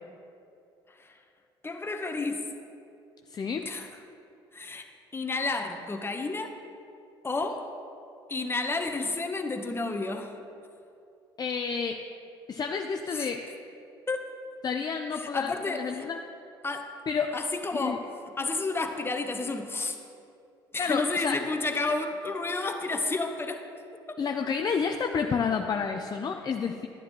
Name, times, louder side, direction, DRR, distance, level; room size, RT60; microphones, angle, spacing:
voice 1, 1.6-2.5 3.6-3.9 4.5-4.8 5.1-6.5 7.2-7.7 8.3-10.3 13.1-13.3 14.1-14.3 15.1-16.1 16.6-17.0 17.3-18.1 18.4-20.0 20.7-23.7 24.1-24.2, left 3 dB, 20° left, 5 dB, 1.0 m, -31 dB
voice 2, 3.3-3.7 11.4-12.0 12.5-13.5 14.6-16.2 17.1-17.4 17.7-18.0 20.8-21.4 24.2-26.9, left 6 dB, 35° left, 5 dB, 0.5 m, -30 dB
11.5 x 9.8 x 3.0 m, 2.6 s
hypercardioid pair, 60°, 12 cm